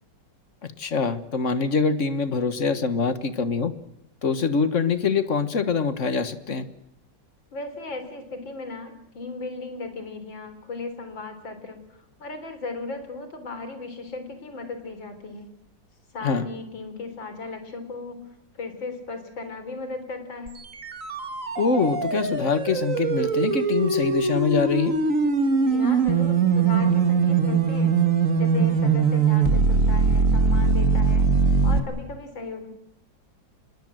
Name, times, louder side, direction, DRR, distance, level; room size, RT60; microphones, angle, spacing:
voice 1, 0.6-3.7 4.2-6.7 16.2-16.5 21.6-24.9, left 5 dB, 45° left, 12 dB, 1.6 m, -24 dB
voice 2, 7.5-15.5 16.1-18.2 18.5-20.6 25.6-28.0 28.4-32.7, left 3 dB, 85° left, 8 dB, 4.6 m, -36 dB
sound 1, 20.5-31.8, right 5 dB, 45° right, 2.2 m, -21 dB
26.0 x 21.5 x 7.8 m, 0.82 s
omnidirectional pair, 2.0 m